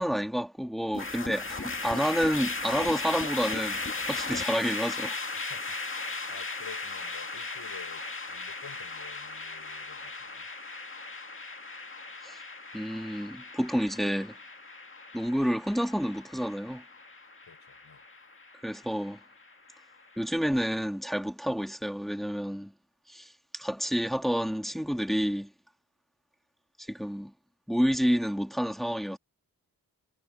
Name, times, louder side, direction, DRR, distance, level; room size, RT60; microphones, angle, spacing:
voice 1, 0.0-3.8 4.1-5.2 12.2-12.4 12.7-14.4 15.1-16.8 18.6-19.2 20.2-22.7 23.1-25.5 26.8-27.3 27.7-29.2, equal, ahead, 1.9 m, -29 dB
sound 1, 0.9-20.2, left 3 dB, 35° left, 2.1 m, -37 dB
voice 2, 5.3-10.5 17.4-18.0, left 6 dB, 75° left, 5.5 m, -51 dB
wide cardioid pair, 85°, 38 cm